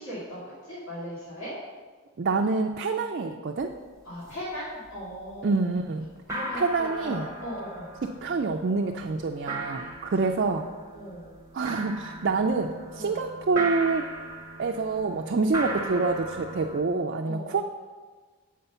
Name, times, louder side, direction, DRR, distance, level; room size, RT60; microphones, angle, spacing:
voice 1, 0.0-1.5 4.0-5.6 6.3-7.9 9.7-9.9 10.7-11.3 12.9-13.2 17.2-17.6, equal, 60° left, -9 dB, 2.2 m, -38 dB
voice 2, 2.2-3.7 5.4-6.1 6.5-7.3 8.0-10.7 11.5-14.1 14.6-17.6, right 4 dB, 50° right, 2 dB, 0.4 m, -27 dB
sound 1, 3.6-3.8 4.0-4.5 4.9-5.5 5.8-5.9 6.2-16.8, right 2 dB, 15° right, 0.8 m, -38 dB
7.9 x 5.1 x 5.6 m, 1.4 s
head